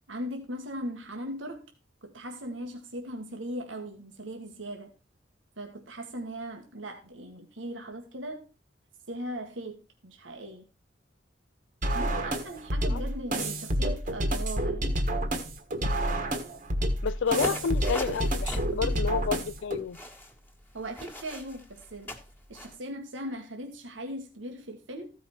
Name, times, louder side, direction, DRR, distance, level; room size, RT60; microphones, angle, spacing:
voice 1, 0.1-1.6 2.0-4.9 5.6-8.4 9.1-10.7 11.9-15.0 20.7-22.1 22.5-25.1, equal, 90° right, 1.7 m, -39 dB
sound 1, 11.8-19.8, right 1 dB, 45° right, 1.5 m, -29 dB
voice 2, 17.0-20.0, left 6 dB, 80° left, 0.4 m, -30 dB
sound 2, 17.3-22.8, equal, 10° left, 1.6 m, -40 dB
14.5 x 5.6 x 4.4 m
head